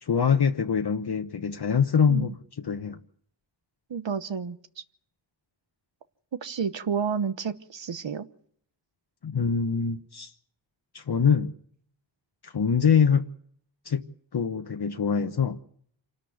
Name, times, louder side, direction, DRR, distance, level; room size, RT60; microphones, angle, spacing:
voice 1, 0.0-3.0 9.2-10.3 10.9-11.5 12.4-13.2 13.8-14.0 14.3-15.6, left 6 dB, 60° left, 1.1 m, -24 dB
voice 2, 3.9-4.6 6.4-8.3, right 6 dB, 75° right, 1.1 m, -30 dB
27.0 x 13.5 x 9.5 m
wide cardioid pair, 70°, 44 cm